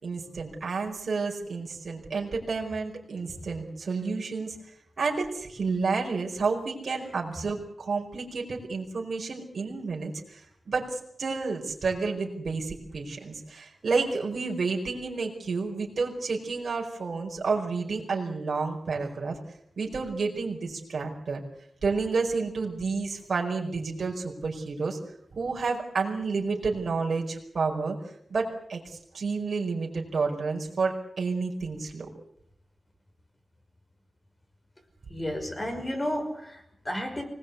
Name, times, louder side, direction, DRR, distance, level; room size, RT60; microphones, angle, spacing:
voice 1, 0.0-4.6 5.0-10.4 10.6-19.4 19.8-21.4 21.8-25.0 25.3-28.0 28.3-32.1, right 4 dB, 65° right, -1 dB, 4.9 m, -30 dB
voice 2, 35.1-37.2, equal, 25° left, 5 dB, 5.8 m, -32 dB
25.0 x 19.5 x 8.2 m, 0.73 s
wide cardioid pair, 115°, 0 cm